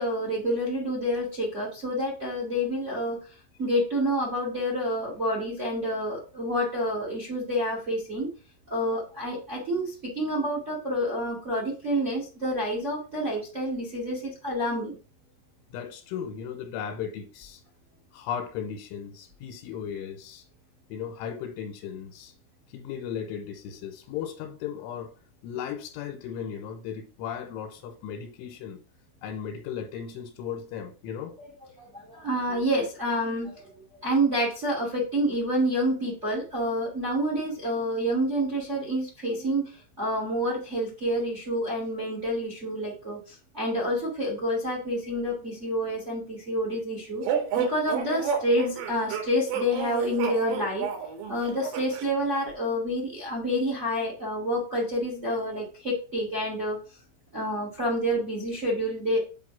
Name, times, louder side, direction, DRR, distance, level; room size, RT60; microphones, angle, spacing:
voice 1, 0.0-3.2 3.6-8.3 8.7-14.9 31.8-39.7 40.0-47.2 47.5-50.8 51.3-56.8 57.3-59.2, equal, 40° right, 1.0 m, -28 dB
voice 2, 15.7-17.6 18.1-20.4 20.9-22.3 22.7-25.1 25.4-28.8 29.2-31.3 32.2-32.3 37.3-37.4, left 8 dB, 85° left, 3.3 m, -36 dB
sound 1, 47.3-52.1, right 7 dB, 80° right, 3.9 m, -30 dB
7.9 x 2.8 x 5.8 m
omnidirectional pair, 5.6 m